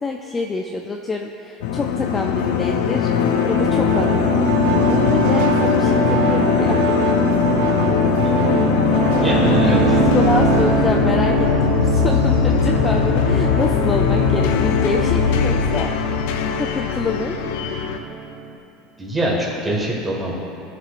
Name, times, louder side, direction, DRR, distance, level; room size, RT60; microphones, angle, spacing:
voice 1, 0.0-3.1 3.4-6.8 9.4-15.9 16.6-17.3, left 3 dB, 15° left, 2 dB, 0.3 m, -26 dB
sound 1, 1.6-18.0, left 7 dB, 80° left, 0.6 m, -20 dB
sound 2, 3.1-18.5, right 5 dB, 80° right, 0.7 m, -23 dB
voice 2, 8.2-8.7 9.2-9.8 19.0-20.3, right 1 dB, 10° right, -4 dB, 1.6 m, -24 dB
14.5 x 6.7 x 2.5 m, 2.9 s
cardioid pair, 155°, 0 cm